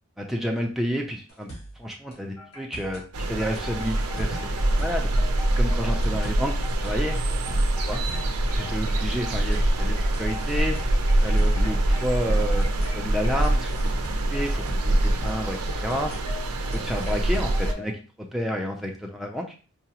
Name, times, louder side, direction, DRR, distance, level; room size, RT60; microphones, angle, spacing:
voice 1, 0.2-1.5 1.8-5.1 5.6-6.5 6.8-7.2 7.9-8.0 8.5-10.9 11.2-12.7 12.9-13.7 14.3-16.1 16.7-17.9 18.2-19.5, equal, ahead, 0 dB, 0.4 m, -30 dB
sound 1, 1.3-1.8 2.1-2.2 2.5-3.1 3.5-5.1 5.4-5.5 5.8-6.4 6.8-8.4 8.7-8.8 9.1-9.6 10.1-11.7 12.0-12.1 12.4-12.9 13.4-15.0 15.3-15.4 15.7-16.2 16.7-17.7, right 1 dB, 90° left, 1.7 m, -42 dB
Wind chime, 2.4-3.0 3.4-17.9, left 4 dB, 60° left, 1.1 m, -44 dB
sound 2, 3.1-17.7, right 1 dB, 85° right, 0.5 m, -24 dB
4.6 x 2.0 x 2.8 m, 0.36 s
head